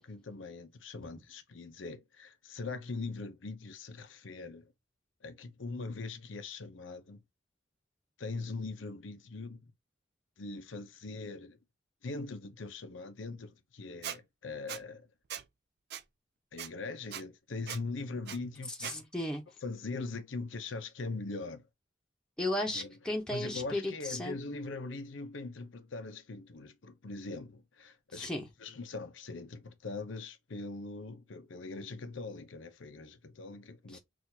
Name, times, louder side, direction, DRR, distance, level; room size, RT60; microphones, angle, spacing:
voice 1, 0.0-4.7 5.2-7.2 8.2-9.7 10.4-11.6 12.0-15.1 16.5-19.0 19.6-21.7 22.7-22.9 23.3-28.3 28.6-34.0, left 3 dB, 85° left, 0.7 m, -41 dB
Squeak, 14.0-14.2 14.7-14.8 15.3-15.4 15.9-16.0 16.6-16.7 17.1-17.2 17.7-17.8 18.3-18.4 18.8-19.0, right 9 dB, 60° right, 0.5 m, -39 dB
voice 2, 18.8-19.4 22.4-24.4 28.1-28.5 33.9-34.0, left 1 dB, 5° left, 0.9 m, -35 dB
6.1 x 2.6 x 2.8 m
head